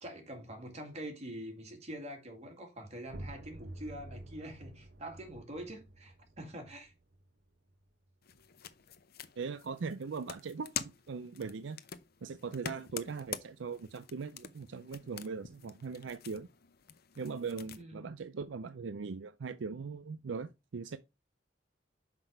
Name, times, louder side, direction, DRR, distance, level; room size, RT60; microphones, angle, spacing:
voice 1, 0.0-6.9 17.7-18.2, right 1 dB, 35° right, 2.2 m, -45 dB
sound 1, 3.1-8.6, right 1 dB, 60° right, 1.0 m, -50 dB
sound 2, 8.2-17.8, left 8 dB, 55° left, 0.7 m, -46 dB
voice 2, 9.4-11.8 12.2-16.5 17.2-21.0, right 5 dB, 80° right, 0.5 m, -40 dB
6.0 x 5.2 x 4.5 m
head